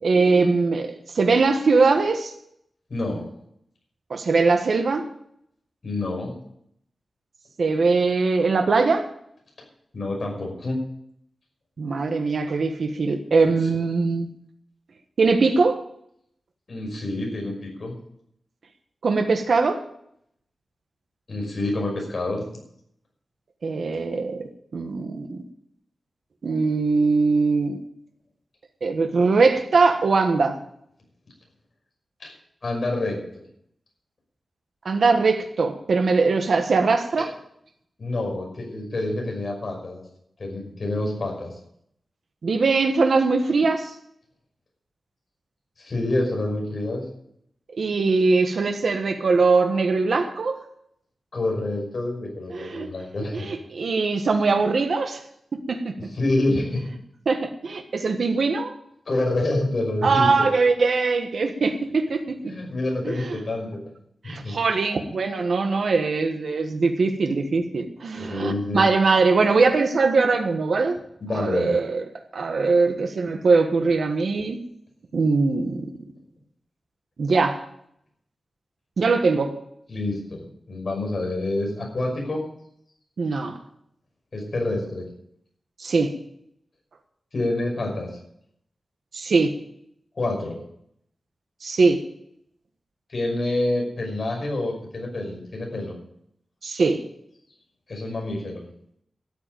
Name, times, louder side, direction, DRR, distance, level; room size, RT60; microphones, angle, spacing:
voice 1, 0.0-2.3 4.1-5.1 7.6-9.1 11.8-14.3 15.2-15.8 19.0-19.8 23.6-24.4 24.7-25.4 26.4-27.8 28.8-30.6 34.8-37.3 42.4-43.9 47.8-50.6 52.5-52.9 53.3-55.2 55.7-55.9 57.2-58.7 60.0-62.5 63.0-63.4 64.2-71.0 71.3-72.0 72.3-74.6 75.1-75.9 77.2-77.6 79.0-79.6 83.2-83.6 85.8-86.1 89.1-89.6 91.6-92.0 96.6-97.0, right 4 dB, 65° right, 5 dB, 1.4 m, -21 dB
voice 2, 2.9-3.3 5.8-6.3 9.9-10.8 16.7-18.0 21.3-22.4 32.2-32.3 32.6-33.4 38.0-40.0 40.4-41.5 45.8-47.1 51.3-53.5 56.1-56.9 59.1-60.5 62.4-63.8 64.2-64.6 68.2-68.9 71.2-71.8 79.9-82.4 84.3-85.1 87.3-88.1 90.2-90.5 93.1-96.0 97.9-98.6, left 2 dB, 45° left, 0 dB, 5.8 m, -27 dB
13.5 x 7.9 x 8.9 m, 0.72 s
wide cardioid pair, 135°, 0 cm